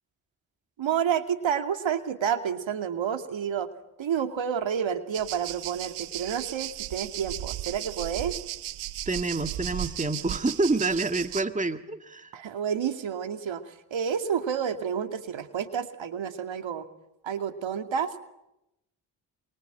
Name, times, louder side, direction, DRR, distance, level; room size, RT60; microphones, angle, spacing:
voice 1, 0.8-3.7 4.0-8.4 12.3-16.9 17.2-18.1, right 8 dB, 65° right, 8 dB, 2.6 m, -29 dB
sound 1, 5.1-11.4, right 14 dB, 85° right, 1.2 m, -36 dB
voice 2, 9.1-12.3, right 3 dB, 15° right, 9 dB, 1.8 m, -28 dB
27.0 x 24.5 x 9.1 m, 0.88 s
supercardioid pair, 55°, 49 cm